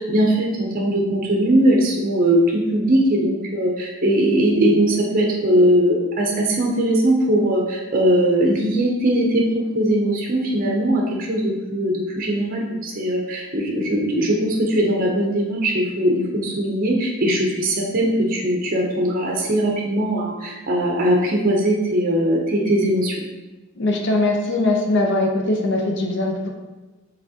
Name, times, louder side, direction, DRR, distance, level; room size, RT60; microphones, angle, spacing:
voice 1, 0.0-23.2, right 1 dB, 40° right, -1 dB, 0.6 m, -20 dB
voice 2, 23.8-26.5, left 2 dB, 55° left, 2 dB, 0.5 m, -21 dB
4.6 x 3.4 x 2.7 m, 1.1 s
head